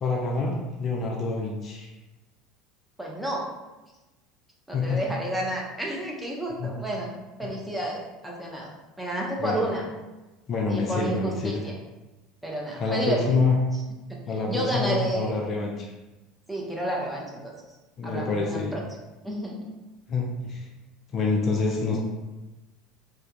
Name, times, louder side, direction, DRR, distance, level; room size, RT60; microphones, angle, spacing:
voice 1, 0.0-1.9 4.7-5.0 6.6-6.7 9.4-9.6 10.5-11.6 12.8-13.6 14.3-15.9 18.0-18.8 20.1-20.7 21.1-22.0, left 4 dB, 35° left, -1 dB, 0.4 m, -27 dB
voice 2, 3.0-3.5 4.7-9.8 10.7-11.7 12.4-13.4 14.1-14.2 14.5-15.6 16.5-17.5 18.0-18.8 19.2-19.6, right 1 dB, 5° right, -2 dB, 0.7 m, -31 dB
3.4 x 2.8 x 2.2 m, 1.1 s
figure-of-eight pair, 70°, 0 cm